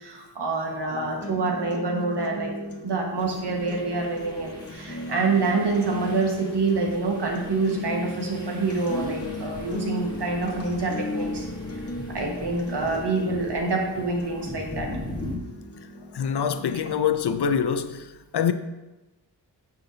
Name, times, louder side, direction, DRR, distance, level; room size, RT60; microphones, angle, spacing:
voice 1, 0.0-2.5 2.8-11.5 12.1-14.9, right 3 dB, 70° right, 1.5 m, -26 dB
sound 1, 0.9-16.9, left 1 dB, 35° left, 1.0 m, -36 dB
sound 2, 3.2-15.4, left 1 dB, 10° left, 1.5 m, -41 dB
voice 2, 16.1-18.0 18.3-18.5, left 7 dB, 70° left, 0.6 m, -24 dB
10.0 x 5.8 x 2.8 m
wide cardioid pair, 110°, 42 cm